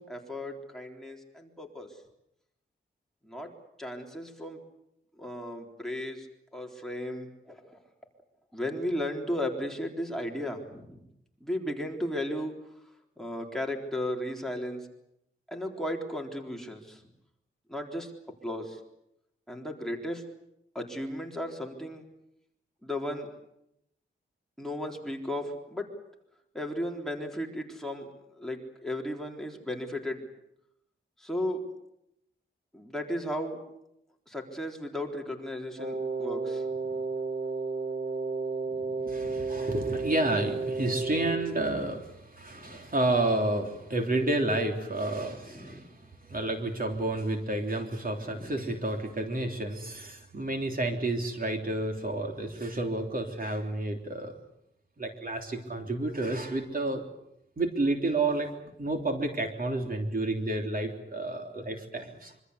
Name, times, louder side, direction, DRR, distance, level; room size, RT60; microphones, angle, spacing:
voice 1, 0.0-2.0 3.2-4.6 5.2-6.3 6.5-7.8 8.5-11.0 11.4-12.5 13.2-14.9 15.5-17.0 17.7-18.1 18.4-18.8 19.5-20.3 20.7-22.1 22.8-23.3 24.6-25.9 26.5-28.1 28.4-30.2 31.2-31.7 32.7-33.6 34.3-36.9 38.7-39.4 42.5-42.9 45.5-45.9 48.2-48.8 55.8-56.0, left 1 dB, ahead, 0 dB, 3.9 m, -35 dB
Wind instrument woodwind instrument, 35.8-41.5, right 4 dB, 65° right, 3.2 m, -32 dB
voice 2, 39.1-45.9 46.2-54.3 55.0-57.0 57.6-58.5 58.8-62.3, right 2 dB, 45° right, 3 dB, 3.4 m, -30 dB
25.5 x 24.5 x 8.1 m, 0.82 s
wide cardioid pair, 115°, 21 cm